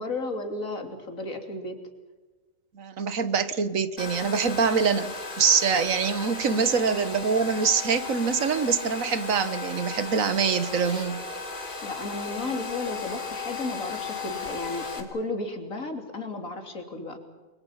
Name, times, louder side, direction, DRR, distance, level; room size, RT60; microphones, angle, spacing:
voice 1, 0.0-1.8 6.5-6.8 11.8-17.2, left 2 dB, 90° left, 5 dB, 3.5 m, -34 dB
voice 2, 2.7-11.2, right 5 dB, 85° right, 13 dB, 1.7 m, -24 dB
Domestic sounds home sounds, 4.0-15.0, left 4 dB, 40° left, 3.2 m, -36 dB
29.5 x 23.0 x 5.8 m, 1.3 s
omnidirectional pair, 1.4 m